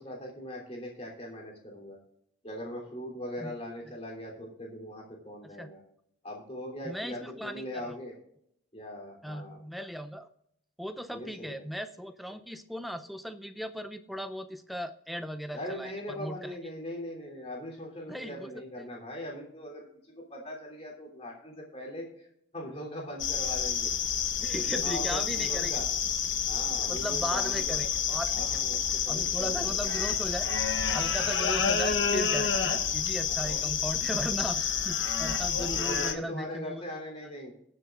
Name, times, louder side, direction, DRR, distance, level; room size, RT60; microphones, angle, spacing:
voice 1, 0.0-2.0 2.4-5.8 6.2-8.1 8.7-9.6 11.1-11.6 15.5-22.3 22.5-23.9 24.5-25.9 26.5-27.8 28.3-29.8 33.4-33.7 35.5-37.5, equal, 30° left, -1 dB, 3.2 m, -40 dB
voice 2, 6.8-7.9 9.2-10.3 10.8-16.6 18.1-18.5 18.8-18.9 24.4-25.8 26.9-28.5 29.1-30.5 30.9-36.8 37.2-37.3, equal, ahead, 9 dB, 0.5 m, -37 dB
sound 1, 23.2-36.1, left 7 dB, 65° left, 1.0 m, -29 dB
21.0 x 7.7 x 2.5 m, 0.74 s
head